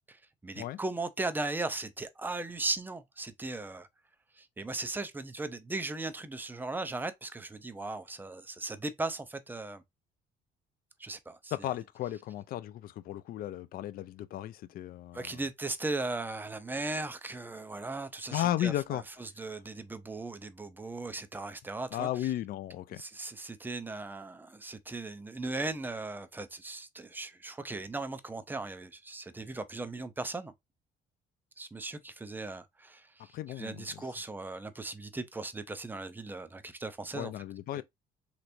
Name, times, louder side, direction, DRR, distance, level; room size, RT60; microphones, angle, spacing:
voice 1, 0.1-3.9 4.4-9.8 11.0-11.7 15.1-22.3 22.9-30.5 31.6-37.3 37.7-37.8, right 2 dB, 10° right, 0.5 m, -38 dB
voice 2, 11.5-15.4 18.3-19.0 21.9-23.0 33.3-34.0 37.1-37.8, left 13 dB, 60° left, 0.4 m, -35 dB
3.3 x 2.9 x 2.5 m
cardioid pair, 110°, 17 cm